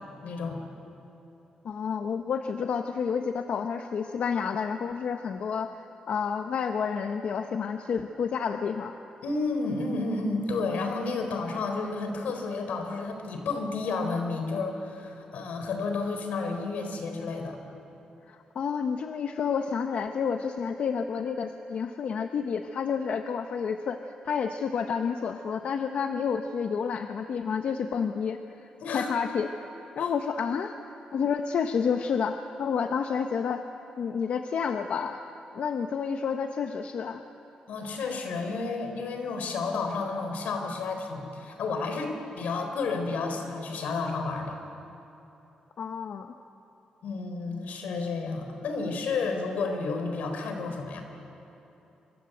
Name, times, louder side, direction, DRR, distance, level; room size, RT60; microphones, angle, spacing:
voice 1, 0.2-0.6 9.2-17.6 28.8-29.1 30.0-30.1 37.7-44.6 47.0-51.0, left 3 dB, 85° left, 5 dB, 4.2 m, -31 dB
voice 2, 1.6-5.7 6.1-9.0 18.3-29.5 30.0-30.7 31.1-33.6 34.0-35.2 35.5-37.2 45.8-46.3, left 6 dB, 60° left, 6 dB, 1.0 m, -30 dB
27.0 x 24.5 x 8.0 m, 3.0 s
wide cardioid pair, 140°, 3 cm